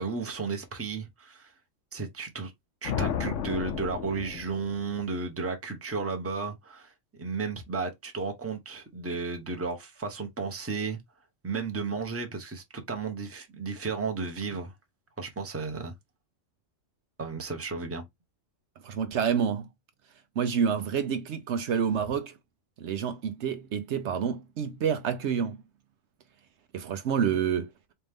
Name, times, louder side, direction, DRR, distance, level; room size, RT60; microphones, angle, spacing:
voice 1, 0.0-1.5 1.9-2.5 2.8-11.0 11.4-14.7 15.2-15.9 17.2-18.0, right 4 dB, 15° right, 0.8 m, -33 dB
sound 1, 2.8-5.1, left 9 dB, 85° left, 1.0 m, -33 dB
voice 2, 18.8-19.7 20.4-22.3 22.8-25.6 26.7-27.7, right 7 dB, 70° right, 0.9 m, -28 dB
4.4 x 2.6 x 3.5 m
omnidirectional pair, 1.3 m